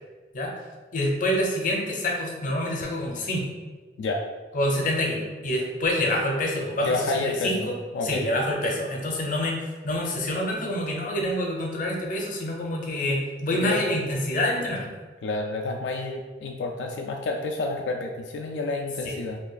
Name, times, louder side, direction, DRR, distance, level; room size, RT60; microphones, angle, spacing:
voice 1, 0.9-3.5 4.5-7.7 8.0-14.9 19.0-19.2, left 1 dB, 50° left, 0 dB, 0.6 m, -27 dB
voice 2, 6.8-8.3 13.6-14.1 15.2-19.4, left 2 dB, 85° left, 1 dB, 0.3 m, -29 dB
2.8 x 2.4 x 3.8 m, 1.4 s
head